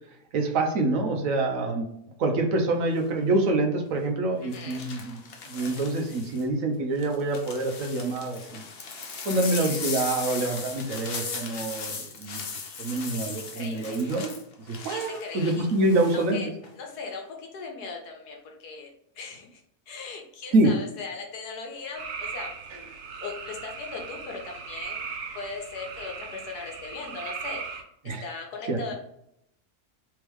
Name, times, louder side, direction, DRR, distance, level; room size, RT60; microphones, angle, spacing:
voice 1, 0.3-1.9 2.2-5.2 5.5-8.6 9.2-12.4 12.8-14.3 14.7-16.4 20.5-20.7 28.1-28.2 28.7-28.8, right 2 dB, 65° right, 2 dB, 1.0 m, -26 dB
sound 1, 2.9-3.2 4.5-6.4 7.0-16.3 16.6-17.1, left 5 dB, 55° left, 0.7 m, -38 dB
voice 2, 4.4-4.8 9.5-9.7 12.7-14.2 14.9-15.7 16.1-16.5 16.8-18.9 19.1-19.6 19.9-22.5 23.2-28.9, left 4 dB, 85° left, 1 dB, 1.4 m, -39 dB
sound 2, 21.9-27.8, right 5 dB, 80° right, 1.2 m, -38 dB
3.5 x 3.4 x 3.1 m, 0.76 s
omnidirectional pair, 1.6 m